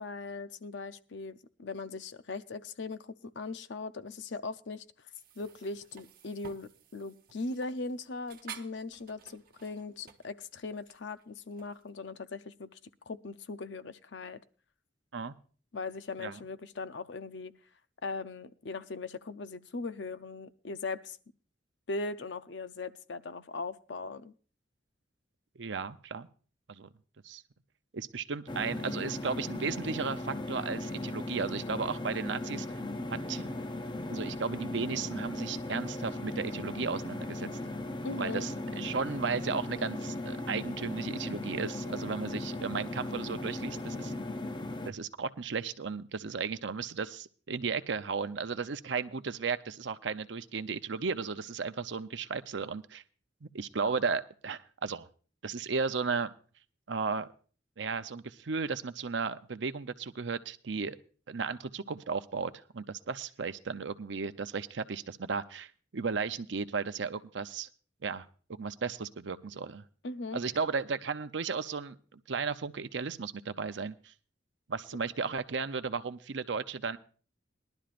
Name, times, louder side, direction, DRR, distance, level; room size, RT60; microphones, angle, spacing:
voice 1, 0.0-4.8 5.4-12.8 13.1-14.4 15.7-17.5 18.0-21.2 21.9-24.3 38.0-38.5 70.0-70.4, left 3 dB, 65° left, 12 dB, 0.6 m, -39 dB
doing the dishes, 5.1-11.9, right 7 dB, 50° right, 1.0 m, -52 dB
voice 2, 25.6-26.3 26.7-26.9 27.2-27.4 27.9-32.7 33.1-33.4 34.1-37.5 38.2-44.1 44.9-53.0 53.4-55.1 55.4-56.3 56.9-57.3 57.8-61.0 61.3-67.7 68.0-68.3 68.6-69.8 70.3-74.1 74.7-77.0, right 5 dB, 70° right, 11 dB, 0.7 m, -35 dB
sound 1, 28.5-44.9, left 2 dB, 25° left, 0.6 m, -37 dB
20.5 x 11.5 x 2.5 m, 0.41 s
head